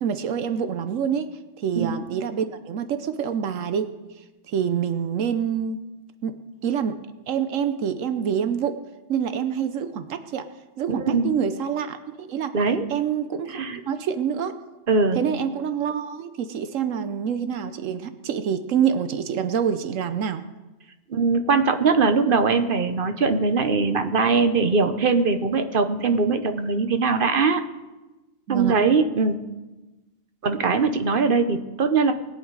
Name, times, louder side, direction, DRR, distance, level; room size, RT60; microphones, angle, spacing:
voice 1, 0.0-1.3 1.6-3.9 4.5-5.8 6.2-6.3 6.6-7.0 7.3-8.8 9.1-10.4 10.8-12.5 12.9-13.6 13.9-14.6 15.1-20.5 28.5-28.8, right 8 dB, 80° right, 10 dB, 1.1 m, -26 dB
voice 2, 10.9-11.3 12.5-12.8 13.5-13.8 14.9-15.2 21.1-27.6 28.5-29.4 30.4-32.1, right 4 dB, 45° right, 8 dB, 1.0 m, -21 dB
20.5 x 8.4 x 4.7 m, 1.1 s
omnidirectional pair, 1.3 m